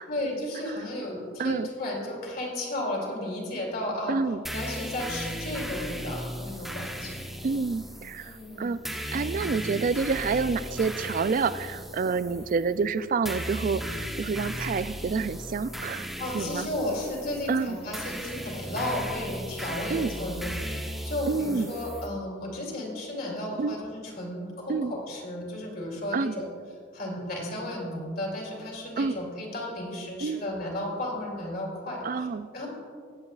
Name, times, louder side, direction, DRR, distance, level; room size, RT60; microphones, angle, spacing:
voice 1, 0.1-4.2 4.5-7.1 8.2-8.8 16.2-20.8 21.0-26.5 26.9-32.3 32.5-32.7, left 1 dB, 55° left, -2 dB, 2.9 m, -34 dB
voice 2, 4.1-4.4 7.4-16.0 16.3-16.7 17.5-17.8 19.9-20.1 21.3-21.7 23.6-23.8 24.7-24.9 26.1-26.3 29.0-29.2 30.2-30.4 32.0-32.5, right 4 dB, 45° right, 14 dB, 0.3 m, -28 dB
sound 1, 4.5-22.1, equal, ahead, 1.0 m, -36 dB
20.5 x 8.3 x 2.4 m, 2.1 s
head